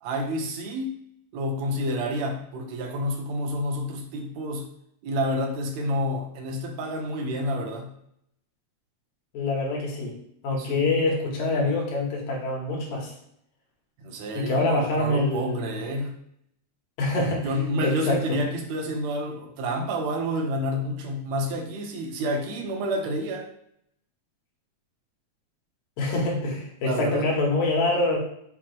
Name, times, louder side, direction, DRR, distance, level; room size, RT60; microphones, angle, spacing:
voice 1, 0.0-0.9 1.3-4.7 5.0-7.9 10.6-11.0 14.0-16.2 17.1-23.5 26.8-27.3, equal, 75° right, 2 dB, 1.9 m, -29 dB
voice 2, 9.3-10.2 10.4-13.1 14.3-15.8 17.0-17.6 17.8-18.2 26.0-28.2, left 2 dB, 80° left, -2 dB, 2.5 m, -25 dB
5.8 x 2.0 x 4.5 m, 0.71 s
omnidirectional pair, 3.4 m